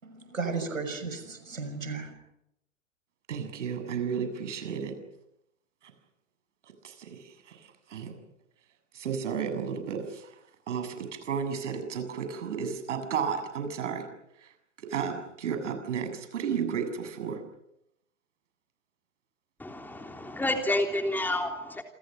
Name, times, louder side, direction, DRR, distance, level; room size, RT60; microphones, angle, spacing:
voice 1, 0.0-2.1, right 4 dB, 85° right, 9 dB, 6.5 m, -34 dB
voice 2, 3.3-5.0 6.8-8.1 8.9-10.3 10.7-14.1 14.4-14.5 14.8-17.4, right 7 dB, 65° right, 8 dB, 7.5 m, -33 dB
voice 3, 19.6-21.8, left 1 dB, 5° left, 4 dB, 3.4 m, -29 dB
29.0 x 27.5 x 6.5 m, 0.82 s
figure-of-eight pair, 105°, 39 cm